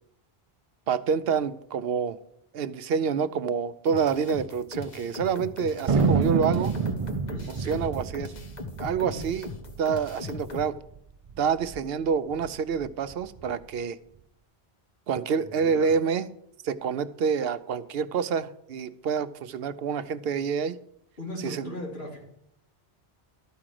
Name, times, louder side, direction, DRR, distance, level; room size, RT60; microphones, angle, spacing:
voice 1, 0.9-2.2 2.5-6.7 7.5-8.3 8.8-9.5 9.8-10.7 11.4-14.0 15.1-16.3 16.6-20.8 21.4-21.7, right 6 dB, 75° right, 13 dB, 0.8 m, -27 dB
sound 1, 3.9-10.7, left 4 dB, 45° left, 1.1 m, -39 dB
Thunder, 5.9-10.7 11.0-11.1 11.3-11.8 12.3-13.5, right 4 dB, 45° right, 0.4 m, -28 dB
voice 2, 7.3-7.8 9.0-9.3 15.4-15.9 21.2-22.2, left 2 dB, 80° left, -2 dB, 3.1 m, -39 dB
13.0 x 4.9 x 7.5 m, 0.73 s
omnidirectional pair, 1.0 m